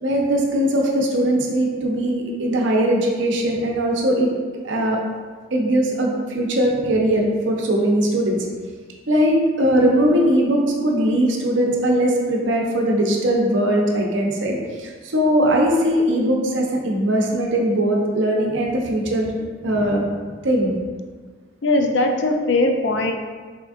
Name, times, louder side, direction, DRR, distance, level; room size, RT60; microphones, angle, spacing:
voice 1, 0.0-4.3 4.6-5.0 5.5-8.4 9.1-20.0 20.4-20.7, right 1 dB, 75° right, -1 dB, 0.7 m, -20 dB
voice 2, 19.6-20.0 21.6-23.1, left 2 dB, 70° left, 3 dB, 0.4 m, -20 dB
4.3 x 3.5 x 2.4 m, 1.5 s
head